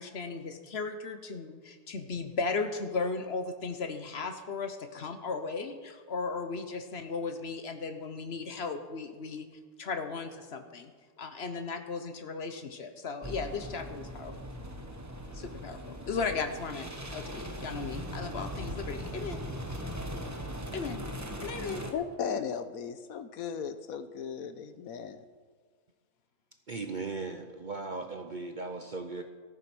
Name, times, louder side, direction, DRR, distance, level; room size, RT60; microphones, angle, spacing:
voice 1, 0.0-9.5 9.8-10.9 11.2-14.3 15.3-19.4 20.7-21.0 21.4-21.8, left 4 dB, 50° left, 8 dB, 1.1 m, -36 dB
Car wash, 13.2-21.9, equal, 15° right, 1.0 m, -39 dB
voice 2, 21.9-25.2, left 7 dB, 75° left, 11 dB, 1.2 m, -36 dB
voice 3, 26.7-29.2, right 3 dB, 45° right, 6 dB, 0.7 m, -37 dB
14.5 x 9.2 x 6.1 m, 1.5 s
omnidirectional pair, 1.6 m